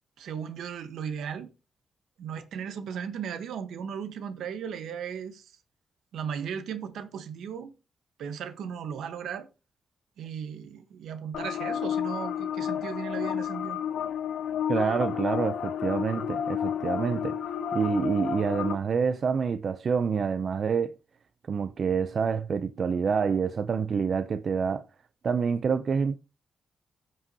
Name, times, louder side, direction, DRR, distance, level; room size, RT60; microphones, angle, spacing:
voice 1, 0.2-1.5 2.2-5.5 6.1-7.7 8.2-9.5 10.2-13.8, right 7 dB, 85° right, 1.1 m, -36 dB
sound 1, 11.3-18.7, left 9 dB, 85° left, 0.8 m, -31 dB
voice 2, 14.7-17.4 17.7-20.9 21.5-24.9 25.2-26.2, right 6 dB, 55° right, 0.5 m, -27 dB
16.0 x 5.5 x 2.8 m
cardioid pair, 75°, 0 cm